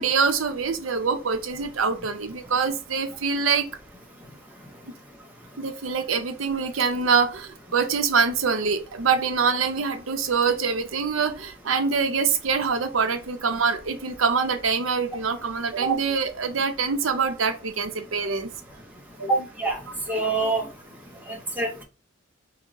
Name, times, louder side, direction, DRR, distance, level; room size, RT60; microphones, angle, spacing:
voice 1, 0.0-3.7 5.6-18.5 19.3-19.4 20.3-20.5, right 5 dB, 70° right, 0.7 m, -24 dB
voice 2, 19.2-19.8 20.1-20.7 21.6-21.8, right 4 dB, 10° right, 1.1 m, -24 dB
5.3 x 2.1 x 3.6 m
head